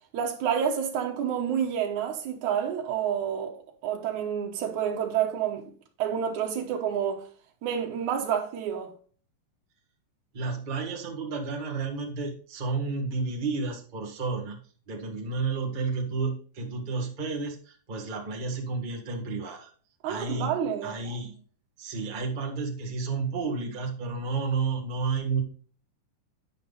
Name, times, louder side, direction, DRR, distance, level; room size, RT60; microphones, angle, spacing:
voice 1, 0.1-3.5 3.8-5.7 6.0-7.2 7.6-8.9 20.0-21.0, right 8 dB, 70° right, 2.4 m, -29 dB
voice 2, 10.3-14.6 14.9-19.7 20.0-21.4 21.8-25.4, right 4 dB, 40° right, 0.6 m, -31 dB
9.0 x 5.4 x 4.0 m
omnidirectional pair, 3.7 m